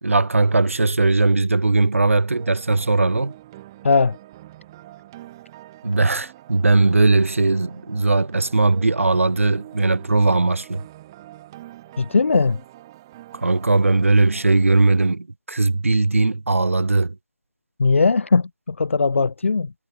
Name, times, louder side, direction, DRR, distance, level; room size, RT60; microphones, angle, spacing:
voice 1, 0.0-3.3 5.8-10.8 13.3-17.1, right 3 dB, 70° right, 1.3 m, -19 dB
sound 1, 2.3-15.1, right 15 dB, 15° right, 0.9 m, -44 dB
voice 2, 3.8-4.2 12.0-12.6 17.8-19.7, left 4 dB, 60° left, 0.4 m, -19 dB
figure-of-eight pair, 160°, 7 cm